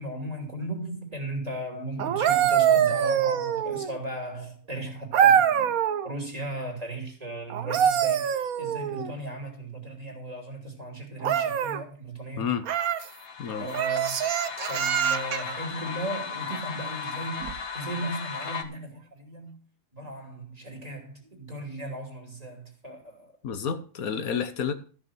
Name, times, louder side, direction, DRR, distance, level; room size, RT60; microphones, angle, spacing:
voice 1, 0.0-12.5 13.6-14.2 14.7-19.6 19.9-23.3, right 1 dB, 25° right, 2.9 m, -36 dB
sound 1, 2.0-4.0 5.1-6.1 7.5-9.1 11.2-11.8 12.6-13.1 13.7-15.5 17.4-17.6, right 9 dB, 80° right, 1.3 m, -24 dB
sound 2, 13.0-18.6, left 6 dB, 55° left, 1.4 m, -36 dB
voice 2, 23.4-24.7, left 7 dB, 80° left, 1.5 m, -30 dB
13.5 x 6.1 x 6.2 m
omnidirectional pair, 1.5 m